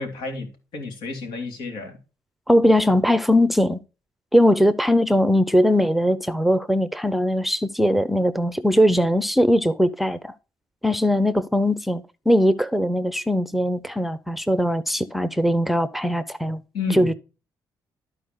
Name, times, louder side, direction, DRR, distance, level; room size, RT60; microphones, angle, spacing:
voice 1, 0.0-2.0 16.7-17.1, left 3 dB, 85° left, 3.4 m, -30 dB
voice 2, 2.5-3.8 4.3-10.3 10.8-16.6 16.9-17.1, equal, ahead, 0.6 m, -20 dB
12.5 x 4.7 x 3.7 m
cardioid pair, 105°, 8 cm